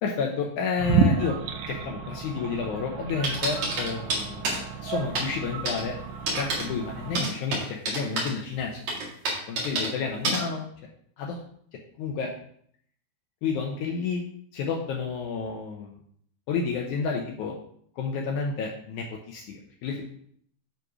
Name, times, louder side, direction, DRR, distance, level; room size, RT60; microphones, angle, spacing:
voice 1, 0.0-1.4 1.7-5.9 6.3-8.8 9.5-10.6 11.2-11.4 12.0-12.3 13.4-14.2 14.5-16.0 16.5-17.5 18.0-20.0, left 5 dB, 90° left, 0 dB, 1.7 m, -30 dB
sound 1, 0.8-7.2, right 5 dB, 80° right, 1.8 m, -30 dB
sound 2, 3.2-4.6 5.2-5.3 5.7-5.8 6.3-6.6 7.2-8.3 8.9-9.9 10.2-10.4, right 2 dB, 50° right, 3.1 m, -27 dB
9.7 x 4.0 x 4.9 m, 0.65 s
omnidirectional pair, 4.6 m